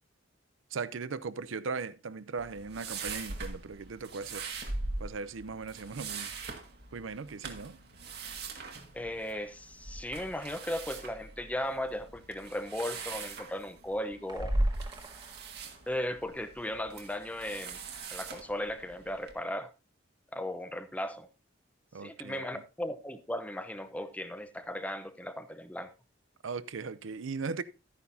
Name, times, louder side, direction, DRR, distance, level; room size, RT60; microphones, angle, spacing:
voice 1, 0.7-4.5 5.0-6.3 6.9-7.8 21.9-22.6 26.4-27.6, right 4 dB, 85° right, 0.6 m, -38 dB
sound 1, 2.4-19.3, right 2 dB, 55° right, 1.7 m, -39 dB
voice 2, 8.9-14.5 15.9-17.8 18.1-19.7 20.3-21.3 22.0-25.9, left 1 dB, 5° left, 0.8 m, -36 dB
sound 2, 14.3-16.0, right 2 dB, 25° right, 1.5 m, -52 dB
12.5 x 9.8 x 2.7 m
head